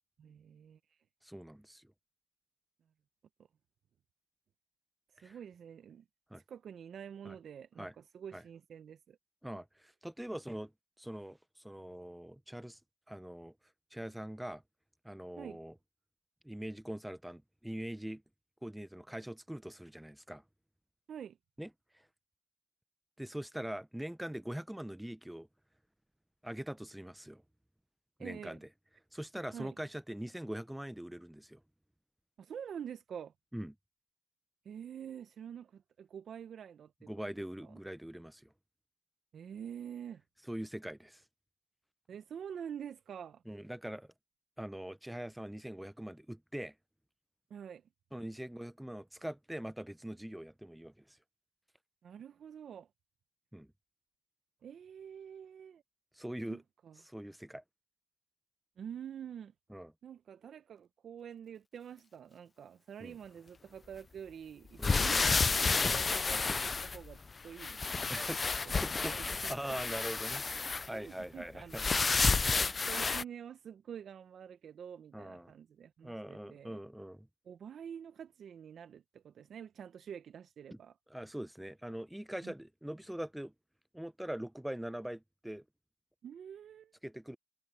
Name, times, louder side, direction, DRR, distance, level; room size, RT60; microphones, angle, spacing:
voice 1, 0.2-1.0 5.1-6.0 6.3-9.2 15.4-15.6 21.1-21.4 28.2-28.6 29.5-29.7 32.4-33.3 34.6-37.1 37.6-37.8 39.3-40.2 42.1-43.4 47.5-47.8 52.0-52.9 54.6-55.8 56.5-57.0 58.8-59.5 60.0-68.7 69.1-69.8 70.5-71.9 72.5-76.8 77.5-81.0 82.4-82.5 86.2-86.9, right 8 dB, 60° right, 0.7 m, -47 dB
voice 2, 1.2-1.9 5.2-5.4 6.3-6.4 7.2-7.4 7.8-7.9 8.3-8.4 9.4-10.7 11.0-12.8 13.1-13.5 13.9-14.6 15.0-15.7 16.4-18.2 18.6-20.4 21.6-21.7 21.9-22.1 23.2-25.5 26.4-27.4 28.2-28.7 29.1-31.6 33.5-33.7 37.1-38.5 40.5-41.2 43.5-44.1 44.6-46.7 48.1-51.2 53.5-53.7 56.1-56.6 57.0-57.6 59.7-59.9 63.0-63.2 64.8-65.0 68.1-68.4 68.7-69.2 69.4-70.4 70.9-71.8 75.1-75.5 76.0-77.3 81.1-83.5 83.9-85.6 87.0-87.4, right 1 dB, 5° right, 0.7 m, -42 dB
sound 1, 64.8-67.3 67.6-70.9 71.7-73.2, left 4 dB, 30° left, 0.3 m, -30 dB
cardioid pair, 90°, 0 cm